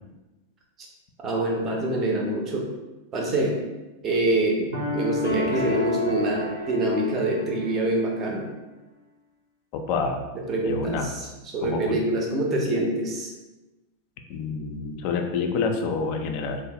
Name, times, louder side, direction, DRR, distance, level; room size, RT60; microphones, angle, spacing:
voice 1, 1.2-2.7 3.1-3.6 4.0-8.5 10.5-11.3 11.5-13.3, right 1 dB, 30° right, 0 dB, 0.5 m, -25 dB
sound 1, 4.7-8.0, left 1 dB, 70° right, 0.6 m, -29 dB
voice 2, 9.7-10.3 10.6-11.1 11.6-12.0 14.3-16.6, left 4 dB, 45° left, 5 dB, 0.3 m, -28 dB
3.0 x 2.1 x 2.8 m, 1.1 s
figure-of-eight pair, 90°, 0 cm